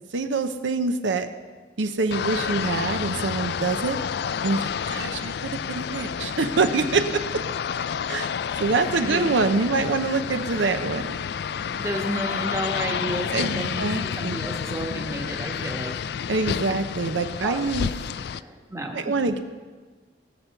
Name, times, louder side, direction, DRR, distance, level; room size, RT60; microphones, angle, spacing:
voice 1, 0.1-1.3 1.8-4.0 4.4-5.3 5.7-7.2 8.1-8.3 8.6-11.1 13.3-14.4 16.3-17.9 18.9-19.4, right 3 dB, 80° right, 8 dB, 0.7 m, -25 dB
sound 1, 2.1-18.4, left 7 dB, 60° left, 0.3 m, -30 dB
voice 2, 11.7-15.9 16.7-16.8 17.4-17.6 18.0-19.1, right 1 dB, 15° right, 2 dB, 1.2 m, -32 dB
18.0 x 6.8 x 5.8 m, 1.4 s
head